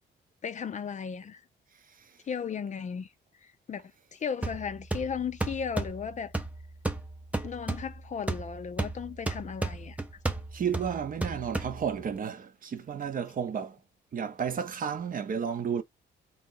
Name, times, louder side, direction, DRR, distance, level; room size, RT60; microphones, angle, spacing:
voice 1, 0.4-1.4 2.2-3.1 3.4-6.3 7.4-10.0, left 7 dB, 40° left, 0.5 m, -36 dB
sound 1, 4.4-12.2, right 2 dB, 5° right, 0.6 m, -35 dB
voice 2, 10.5-13.8 14.1-15.8, right 7 dB, 45° right, 0.7 m, -32 dB
3.7 x 2.7 x 3.8 m
cardioid pair, 90°, 20 cm